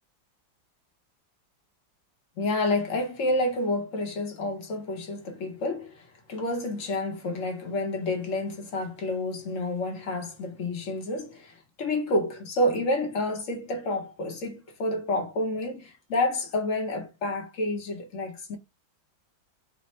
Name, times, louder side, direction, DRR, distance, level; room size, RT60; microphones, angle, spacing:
voice 1, 2.4-18.6, left 1 dB, 55° left, 1.0 m, -29 dB
3.3 x 2.1 x 4.1 m
omnidirectional pair, 2.0 m